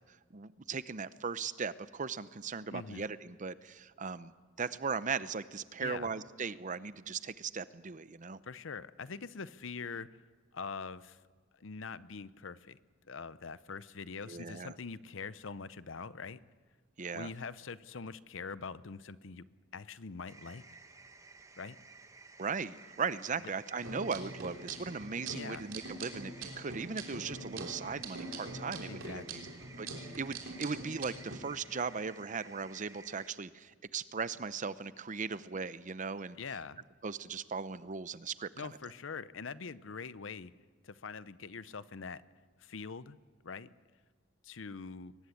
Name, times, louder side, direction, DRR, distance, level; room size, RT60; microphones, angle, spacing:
voice 1, 0.3-8.4 14.3-14.7 17.0-17.3 22.4-29.5 29.8-36.4 37.0-38.7, right 5 dB, 40° right, 15 dB, 0.7 m, -38 dB
voice 2, 2.7-3.0 5.8-6.1 8.4-10.1 10.5-11.2 11.5-12.8 13.1-16.4 17.1-19.4 19.7-20.6 21.6-21.8 25.3-25.6 28.9-29.6 36.4-36.8 38.5-40.5 40.8-42.2 42.6-43.2 43.4-43.7 44.4-45.1, left 5 dB, 70° left, 16 dB, 0.7 m, -43 dB
sound 1, 20.3-33.3, right 4 dB, 15° right, 1.2 m, -55 dB
sound 2, 23.8-31.4, right 2 dB, 75° right, 3.6 m, -44 dB
22.5 x 19.5 x 8.5 m, 1.5 s
head